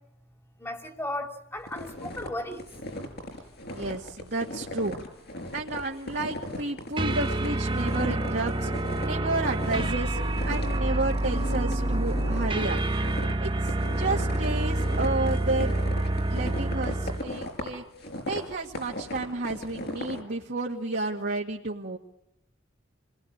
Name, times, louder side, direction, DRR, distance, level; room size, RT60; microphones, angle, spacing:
voice 1, 0.6-2.7, left 1 dB, 10° left, 3 dB, 2.8 m, -35 dB
sound 1, 1.7-9.1 9.4-10.0 10.3-20.2, left 1 dB, 55° left, 5.3 m, -38 dB
voice 2, 3.7-5.0 5.5-8.7 9.0-12.8 13.4-15.8 16.3-17.8 18.3-22.0, right 2 dB, 55° right, -1 dB, 2.0 m, -31 dB
sound 2, 7.0-17.3, right 1 dB, 25° right, 1.1 m, -27 dB
29.0 x 20.5 x 8.8 m, 0.82 s
head